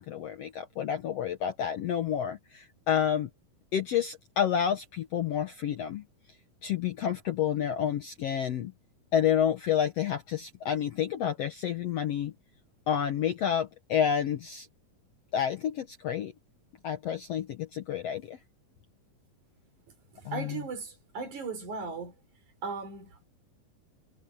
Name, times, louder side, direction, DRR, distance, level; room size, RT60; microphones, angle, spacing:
voice 1, 0.0-3.3 3.7-6.0 6.6-8.7 9.1-12.3 12.9-14.7 15.3-16.3 16.8-18.4 20.2-20.6, left 9 dB, 70° left, 1.5 m, -29 dB
voice 2, 20.3-22.1 22.6-23.2, right 4 dB, 55° right, 5.7 m, -37 dB
omnidirectional pair, 4.1 m